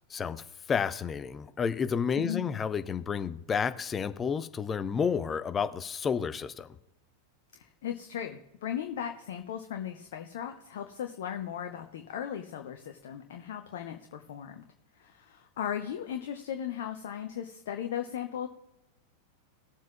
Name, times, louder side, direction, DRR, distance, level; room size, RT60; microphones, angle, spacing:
voice 1, 0.1-0.4 0.7-6.7, left 6 dB, 20° left, 12 dB, 0.6 m, -30 dB
voice 2, 2.2-2.6 7.5-14.6 14.9-18.5, left 9 dB, 55° left, 5 dB, 0.8 m, -37 dB
20.0 x 7.4 x 2.4 m, 0.85 s
figure-of-eight pair, 90°, 0 cm